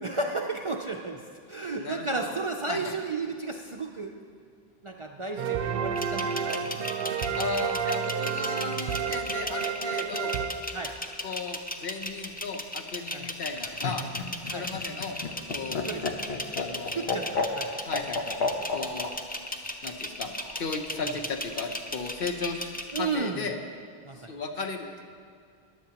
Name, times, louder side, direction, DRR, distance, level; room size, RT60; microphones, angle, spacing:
voice 1, 0.0-1.2 1.5-4.1 4.8-7.0 10.7-10.9 13.1-13.3 14.5-14.7 15.8-16.0 16.9-17.7 22.9-23.4 24.0-24.3, right 3 dB, 40° right, 2 dB, 0.5 m, -33 dB
voice 2, 1.8-2.3 2.7-2.9 7.3-10.4 11.2-14.0 14.4-15.2 15.5-15.8 16.5-17.1 17.8-18.4 18.7-19.1 19.5-20.3 20.6-22.7 22.9-23.6 24.2-25.0, left 4 dB, 65° left, 4 dB, 1.0 m, -35 dB
sound 1, 5.4-11.3, right 7 dB, 70° right, 0.8 m, -31 dB
sound 2, 6.0-23.1, left 1 dB, 10° left, 0.4 m, -36 dB
Laughter, 13.4-19.1 20.4-21.0, left 4 dB, 85° left, 1.1 m, -31 dB
15.0 x 10.5 x 2.9 m, 2.2 s
omnidirectional pair, 1.0 m